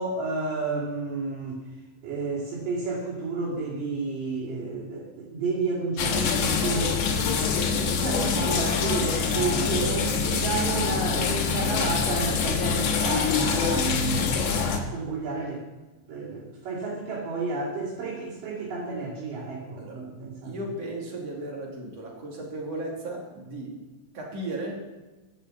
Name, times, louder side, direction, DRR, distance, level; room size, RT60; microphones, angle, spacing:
voice 1, 0.0-7.0 7.5-15.6 16.1-20.6, right 4 dB, 85° right, -8 dB, 4.2 m, -31 dB
sound 1, 6.0-14.8, left 5 dB, 70° left, 2.8 m, -25 dB
voice 2, 9.6-10.4 10.7-10.9 19.8-20.0 20.4-23.7 24.1-24.9, right 1 dB, 50° right, -2 dB, 3.7 m, -35 dB
12.5 x 7.5 x 8.2 m, 1.2 s
omnidirectional pair, 3.8 m